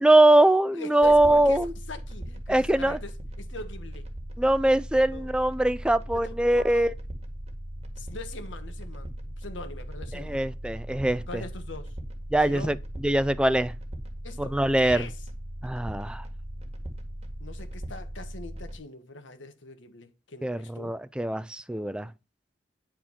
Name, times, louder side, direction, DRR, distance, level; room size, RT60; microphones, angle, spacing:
voice 1, 0.0-1.7 2.5-3.0 4.4-6.9 10.1-11.2 12.3-12.8 13.0-13.7 14.4-15.1 15.6-16.2 20.4-22.1, right 1 dB, 5° right, 0.4 m, -22 dB
voice 2, 0.7-4.1 5.1-5.3 6.1-6.9 8.0-10.5 11.3-11.9 12.4-12.8 14.2-15.2 17.4-21.0, left 2 dB, 90° left, 1.5 m, -42 dB
sound 1, 1.0-18.8, right 1 dB, 35° right, 2.0 m, -38 dB
10.0 x 4.5 x 5.8 m
head